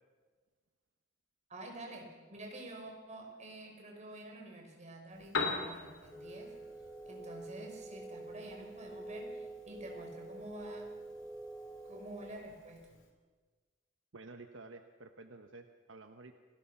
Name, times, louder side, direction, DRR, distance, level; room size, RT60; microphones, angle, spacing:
voice 1, 1.5-6.5 7.1-10.9 11.9-12.8, right 1 dB, 35° right, 1 dB, 5.2 m, -48 dB
Piano, 5.1-13.1, left 3 dB, 65° left, 3.3 m, -44 dB
sound 1, 6.1-12.3, right 2 dB, ahead, 3.3 m, -47 dB
voice 2, 14.1-16.3, right 3 dB, 70° right, 6 dB, 1.1 m, -51 dB
28.5 x 18.5 x 5.9 m, 1.4 s
head